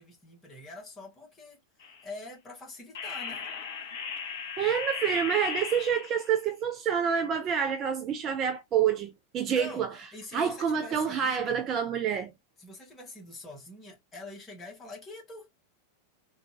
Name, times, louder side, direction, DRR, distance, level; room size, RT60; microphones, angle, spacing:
voice 1, 0.0-1.6 2.0-3.5 9.5-9.9 10.1-11.6 12.6-15.5, left 2 dB, 20° left, 1.8 m, -45 dB
sound 1, 1.8-2.0 2.9-6.3, left 6 dB, 50° left, 1.5 m, -36 dB
voice 2, 4.6-10.0 10.3-12.3, right 8 dB, 30° right, 0.6 m, -28 dB
3.7 x 2.6 x 2.7 m
figure-of-eight pair, 90°, 0 cm